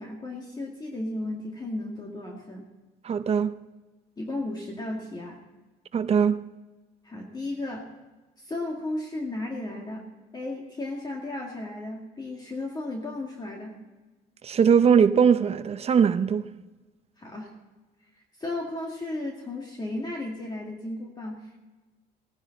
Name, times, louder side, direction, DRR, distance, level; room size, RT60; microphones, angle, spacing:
voice 1, 0.0-2.7 4.2-5.4 7.0-7.9 8.4-10.0 10.3-13.8 17.2-17.5 18.4-21.6, left 2 dB, 25° left, 2.2 m, -34 dB
voice 2, 3.0-3.6 5.9-6.4 14.4-16.5, right 7 dB, 35° right, 0.7 m, -21 dB
18.0 x 10.0 x 4.1 m
cardioid pair, 110°, 17 cm